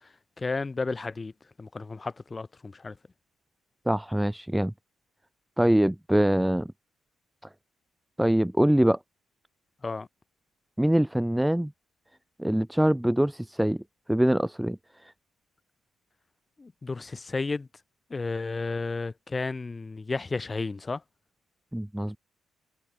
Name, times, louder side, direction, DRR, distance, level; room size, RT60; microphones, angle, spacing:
voice 1, 0.4-1.3 1.6-3.0 9.8-10.1 16.6-17.7 18.1-21.0, left 3 dB, 15° left, 2.9 m, -32 dB
voice 2, 3.9-4.7 5.6-6.7 8.2-9.0 10.8-11.7 12.4-13.8 14.1-14.8 15.0-15.1 21.7-22.2, right 1 dB, 5° right, 1.1 m, -23 dB
cardioid pair, 180°, 0 cm